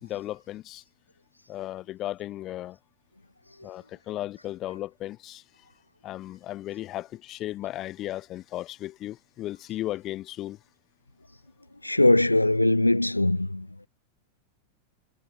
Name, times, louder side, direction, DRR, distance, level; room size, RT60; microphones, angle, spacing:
voice 1, 0.0-0.8 1.5-2.8 3.6-5.6 6.0-10.6, left 14 dB, 35° left, 5.0 m, -35 dB
voice 2, 11.8-13.7, left 1 dB, 85° left, 0.4 m, -21 dB
figure-of-eight pair, 90°, 0 cm